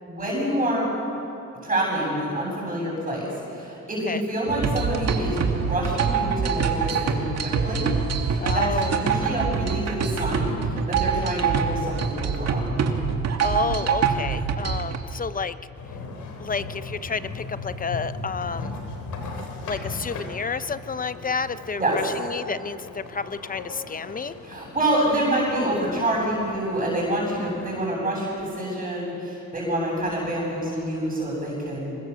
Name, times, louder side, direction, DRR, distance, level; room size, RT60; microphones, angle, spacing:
voice 1, 0.1-0.9 1.6-7.9 8.2-12.9 21.8-22.0 24.4-32.0, right 1 dB, 25° right, -5 dB, 7.7 m, -27 dB
sound 1, 4.5-15.0, right 6 dB, 55° right, 2.1 m, -25 dB
voice 2, 8.4-9.0 13.4-15.6 16.4-18.8 19.6-24.3, left 5 dB, 30° left, 13 dB, 0.8 m, -30 dB
sound 2, 15.7-27.9, left 3 dB, 75° left, 3.7 m, -38 dB
24.0 x 21.0 x 7.1 m, 2.8 s
cardioid pair, 90°, 30 cm